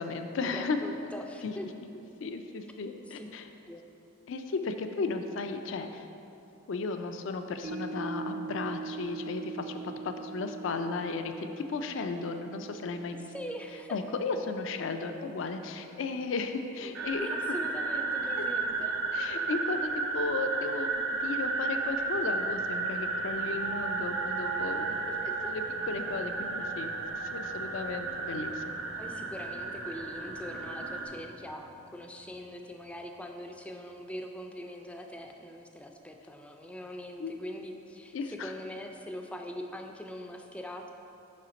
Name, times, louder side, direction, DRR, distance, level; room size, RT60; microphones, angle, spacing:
voice 1, 0.0-0.8 1.4-1.5 2.2-3.5 4.3-6.1 6.7-13.3 13.9-17.3 18.4-18.5 19.1-25.0 25.5-28.8 37.2-37.3 38.1-38.5, left 4 dB, 70° left, 7 dB, 0.4 m, -35 dB
voice 2, 0.5-1.7 3.1-3.3 3.7-3.8 13.3-14.0 17.2-18.9 25.1-25.6 29.0-40.9, left 1 dB, 5° left, 3 dB, 0.3 m, -42 dB
sound 1, 7.6-18.0 18.4-18.5, right 5 dB, 50° right, 0.5 m, -44 dB
sound 2, 16.9-31.1, right 3 dB, 90° right, 0.7 m, -33 dB
sound 3, 20.9-34.3, equal, 70° right, 1.0 m, -54 dB
5.6 x 4.3 x 5.1 m, 2.9 s
head